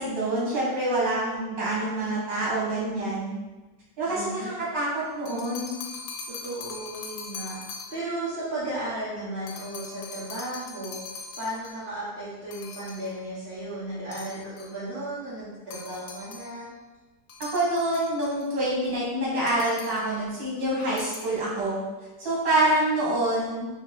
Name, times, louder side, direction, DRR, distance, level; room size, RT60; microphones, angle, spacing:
voice 1, 0.0-3.4 4.0-5.7 17.5-21.8 22.2-23.7, right 1 dB, 85° right, -7 dB, 2.3 m, -26 dB
voice 2, 4.0-4.6 6.3-7.6 7.9-16.7, right 1 dB, 35° right, -12 dB, 1.4 m, -35 dB
sound 1, 5.1-8.2 9.5-11.9 12.5-13.2 14.1-14.8 15.7-16.6 17.3-18.5 19.5-20.2 20.8-21.4, left 4 dB, 75° left, 1.2 m, -41 dB
5.2 x 2.3 x 3.9 m, 1.2 s
omnidirectional pair, 1.9 m